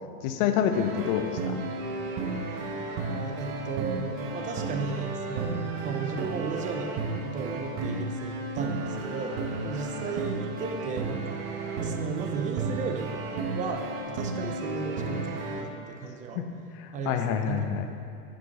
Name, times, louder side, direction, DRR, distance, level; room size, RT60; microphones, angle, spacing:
voice 1, 0.2-1.6 16.3-16.5 16.8-17.9, left 8 dB, 55° left, 7 dB, 0.8 m, -27 dB
sound 1, 0.7-15.6, right 3 dB, 50° right, 1.0 m, -33 dB
voice 2, 3.0-6.9 7.2-11.4 11.8-13.2 13.5-16.4 16.9-17.7, right 4 dB, 20° right, 4 dB, 0.3 m, -35 dB
9.2 x 5.2 x 4.1 m, 2.5 s
hypercardioid pair, 90°, 49 cm